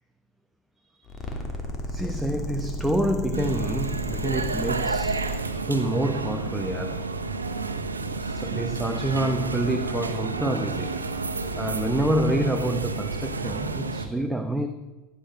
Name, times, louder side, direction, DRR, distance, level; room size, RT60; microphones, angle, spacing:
sound 1, 1.1-5.4, left 1 dB, 25° left, 2.9 m, -33 dB
voice 1, 1.9-5.4 5.7-7.1 8.2-11.0 11.6-14.7, right 1 dB, 5° right, 6 dB, 1.0 m, -27 dB
sound 2, 3.3-14.1, right 3 dB, 90° right, 1.0 m, -30 dB
15.5 x 10.5 x 5.2 m, 1.2 s
hypercardioid pair, 85°, 0 cm